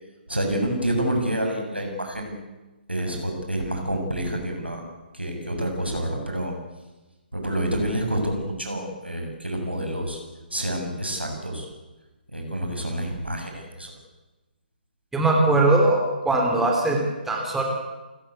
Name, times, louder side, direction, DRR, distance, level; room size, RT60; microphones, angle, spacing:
voice 1, 0.3-2.4 2.9-4.8 5.1-6.5 7.3-10.2 10.5-11.7 12.3-13.9, right 1 dB, 85° right, 3 dB, 7.3 m, -28 dB
voice 2, 15.1-17.0 17.3-17.6, right 2 dB, 5° right, 0 dB, 3.5 m, -20 dB
29.0 x 15.5 x 8.4 m, 1.1 s
figure-of-eight pair, 135°, 6 cm